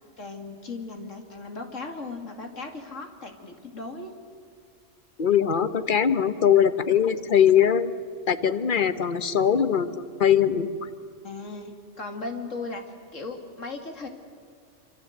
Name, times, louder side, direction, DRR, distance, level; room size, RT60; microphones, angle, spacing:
voice 1, 0.2-4.1 11.2-14.1, left 3 dB, 80° left, 5 dB, 2.8 m, -37 dB
voice 2, 5.2-7.9 8.3-10.7, left 8 dB, 45° left, 12 dB, 1.2 m, -21 dB
25.5 x 25.5 x 8.0 m, 2.2 s
omnidirectional pair, 1.3 m